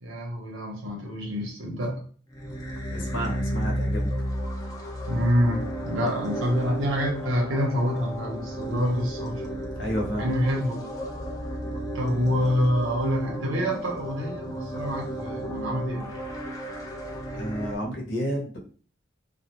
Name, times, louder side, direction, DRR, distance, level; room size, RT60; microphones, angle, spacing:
voice 1, 0.0-2.0 5.1-9.4 10.2-10.9 11.9-16.1, equal, 85° right, 0 dB, 0.8 m, -27 dB
sound 1, 2.3-17.8, equal, 15° left, 0.4 m, -33 dB
voice 2, 2.9-4.1 9.8-10.3 17.3-18.6, equal, 65° left, -1 dB, 0.8 m, -30 dB
2.4 x 2.0 x 2.9 m, 0.42 s
head